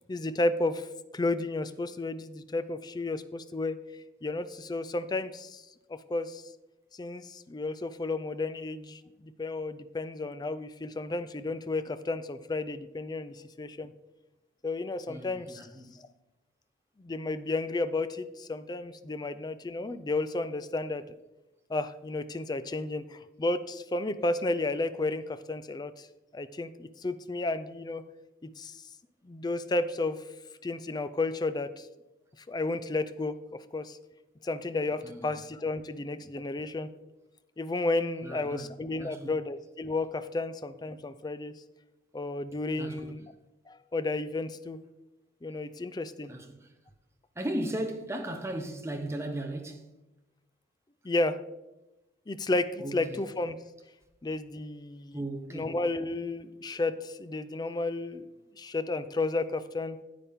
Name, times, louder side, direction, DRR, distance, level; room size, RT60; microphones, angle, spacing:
voice 1, 0.1-0.9 1.1-3.8 4.2-5.6 5.9-6.4 6.9-13.9 14.6-15.6 15.9-16.1 17.0-21.0 21.7-26.1 26.3-28.0 28.6-28.8 29.2-30.2 30.6-31.9 32.5-33.4 33.7-34.0 34.4-36.9 37.6-41.5 42.1-43.3 43.7-44.8 45.4-46.3 51.0-51.4 52.3-53.6 54.2-55.2 55.5-58.3 58.6-60.0, left 2 dB, 20° left, 0.4 m, -32 dB
voice 2, 15.1-16.0 35.0-35.3 38.2-39.3 42.8-43.1 46.3-46.7 47.4-49.9 52.8-53.2 55.1-55.8, right 1 dB, 15° right, 0.9 m, -37 dB
9.9 x 8.5 x 3.6 m
head